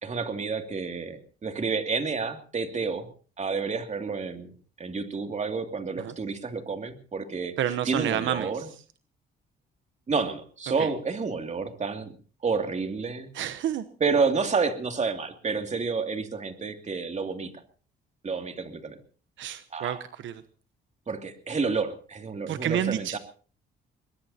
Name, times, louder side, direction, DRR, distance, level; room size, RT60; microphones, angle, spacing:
voice 1, 0.0-3.1 3.4-8.7 10.1-12.1 12.4-13.3 14.0-17.5 18.2-19.0 19.7-20.0 21.1-23.2, right 4 dB, 35° right, 6 dB, 2.6 m, -30 dB
voice 2, 7.6-8.5 10.8-10.9 13.3-13.8 19.4-20.0 20.2-20.4 22.5-23.2, right 10 dB, 75° right, 12 dB, 0.9 m, -29 dB
22.5 x 20.5 x 2.8 m, 0.39 s
cardioid pair, 90°, 20 cm